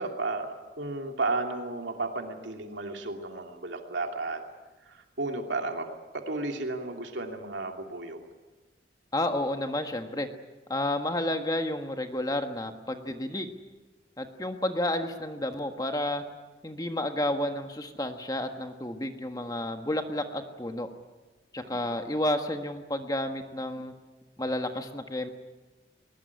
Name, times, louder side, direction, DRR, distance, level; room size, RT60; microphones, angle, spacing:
voice 1, 0.0-4.4 4.8-5.9 6.1-8.3 21.6-21.9, right 3 dB, 90° right, 3 dB, 2.8 m, -33 dB
voice 2, 9.1-10.3 10.7-13.5 14.2-16.2 16.6-20.9 21.5-23.9 24.4-25.3, left 1 dB, 20° left, 6 dB, 1.5 m, -31 dB
21.5 x 21.0 x 9.8 m, 1.2 s
head